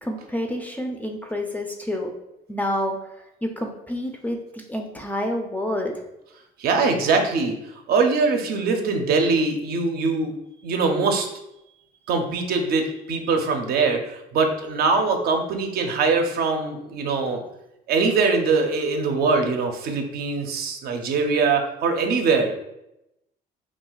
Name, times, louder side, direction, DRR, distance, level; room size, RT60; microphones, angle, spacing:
voice 1, 0.0-2.1 2.5-3.0 3.4-6.0, left 1 dB, 10° left, 2 dB, 0.4 m, -28 dB
voice 2, 6.6-7.6 7.9-10.3 10.6-11.3 12.1-17.4 17.9-22.5, right 4 dB, 65° right, 4 dB, 0.5 m, -22 dB
2.3 x 2.3 x 3.8 m, 0.86 s
cardioid pair, 110°, 17 cm